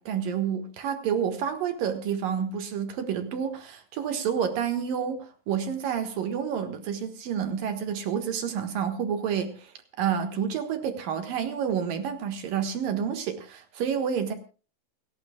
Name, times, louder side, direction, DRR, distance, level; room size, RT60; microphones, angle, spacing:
voice 1, 0.0-9.7 10.0-14.3, right 8 dB, 60° right, 7 dB, 2.5 m, -29 dB
29.0 x 12.5 x 2.3 m, 0.35 s
omnidirectional pair, 5.7 m